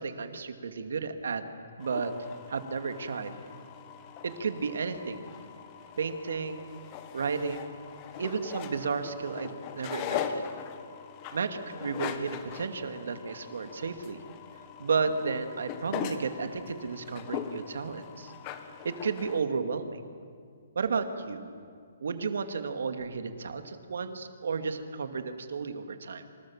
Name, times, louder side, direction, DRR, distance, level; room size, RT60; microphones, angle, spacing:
voice 1, 0.0-1.4 1.8-2.1 2.5-3.3 4.2-5.2 6.0-6.7 7.1-7.8 8.2-10.5 11.3-14.2 14.8-18.3 18.8-20.0 20.7-21.5 22.0-26.3, right 5 dB, 75° right, 7 dB, 2.5 m, -33 dB
sound 1, 1.8-19.4, left 8 dB, 20° left, 1.4 m, -40 dB
28.0 x 27.0 x 7.5 m, 2.2 s
hypercardioid pair, 175°, 0 cm